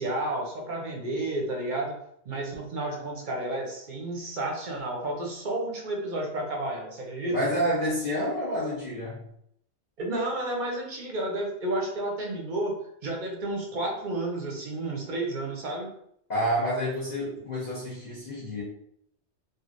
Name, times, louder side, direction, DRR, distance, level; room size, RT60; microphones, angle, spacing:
voice 1, 0.0-2.0 2.3-7.4 10.0-15.9, right 1 dB, 50° right, 0 dB, 0.7 m, -31 dB
voice 2, 7.3-9.2 16.3-18.6, equal, 40° left, -9 dB, 0.9 m, -28 dB
3.2 x 2.4 x 2.5 m, 0.73 s
omnidirectional pair, 1.2 m